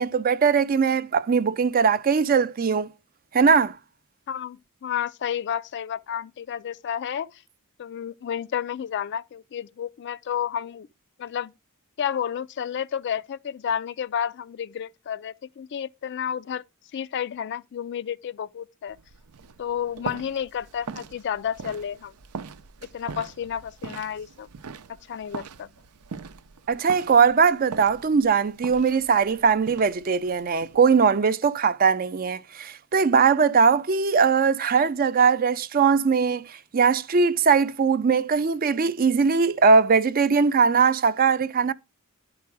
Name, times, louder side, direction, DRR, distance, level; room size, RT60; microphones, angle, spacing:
voice 1, 0.0-2.9 3.3-3.8 26.7-36.5 36.7-41.7, right 5 dB, 40° right, 0.4 m, -20 dB
voice 2, 4.3-7.4 7.8-10.9 11.2-11.5 12.0-16.6 16.9-19.0 19.6-22.1 22.9-24.5 25.1-25.7, left 8 dB, 50° left, 0.3 m, -31 dB
sound 1, 18.9-31.1, right 5 dB, 85° right, 0.6 m, -42 dB
10.5 x 4.7 x 4.7 m
head